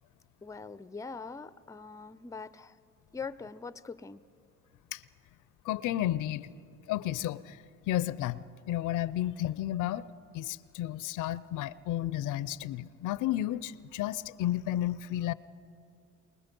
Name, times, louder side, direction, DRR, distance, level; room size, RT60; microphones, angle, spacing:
voice 1, 0.4-2.8 3.1-4.2, left 4 dB, 10° left, 16 dB, 0.5 m, -42 dB
voice 2, 5.6-6.5 6.9-7.6 7.9-10.0 10.3-15.3, left 13 dB, 85° left, 18 dB, 0.5 m, -32 dB
24.0 x 20.5 x 5.3 m, 2.4 s
cardioid pair, 90°, 30 cm